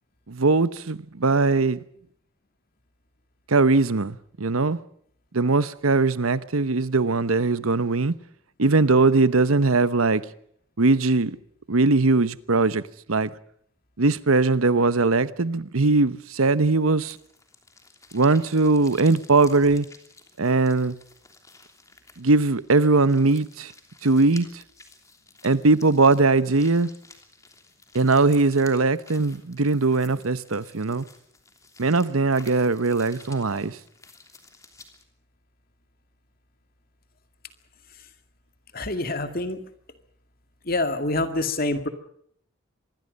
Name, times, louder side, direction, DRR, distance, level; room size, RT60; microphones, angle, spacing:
voice 1, 0.3-1.8 3.5-4.8 5.3-8.1 8.6-10.2 10.8-11.4 11.7-12.8 13.1-13.3 14.0-17.2 18.1-19.9 20.4-21.0 22.2-23.7 24.0-24.5 25.4-26.9 27.9-31.1 31.8-33.8, right 3 dB, 85° right, 1.0 m, -20 dB
sound 1, 17.0-35.0, left 3 dB, 15° left, 3.1 m, -51 dB
voice 2, 38.7-39.6 40.6-41.9, left 2 dB, 45° left, 2.2 m, -26 dB
25.5 x 21.5 x 5.4 m
head